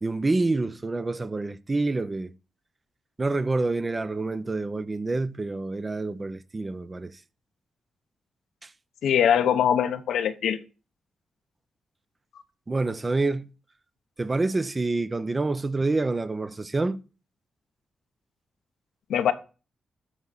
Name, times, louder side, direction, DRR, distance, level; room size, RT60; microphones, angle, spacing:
voice 1, 0.0-2.3 3.2-7.2 8.6-8.7 12.7-13.5 14.2-17.0, right 3 dB, 30° right, 0.7 m, -27 dB
voice 2, 9.0-10.6 19.1-19.3, left 9 dB, 85° left, 0.8 m, -22 dB
12.5 x 4.8 x 4.0 m
cardioid pair, 70°, 0 cm